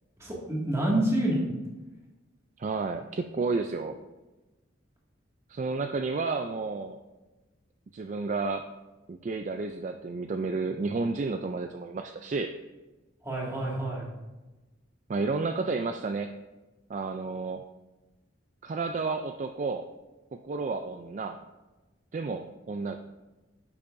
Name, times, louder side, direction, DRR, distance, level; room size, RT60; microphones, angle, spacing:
voice 1, 0.2-1.5 13.2-14.1, right 1 dB, 15° right, -4 dB, 2.0 m, -27 dB
voice 2, 2.6-4.0 5.5-7.0 7.9-8.7 9.1-12.5 15.1-16.3 16.9-17.6 18.6-19.9 20.3-21.4 22.1-23.0, right 3 dB, 40° right, 6 dB, 0.3 m, -31 dB
9.9 x 6.9 x 2.6 m, 1.1 s
head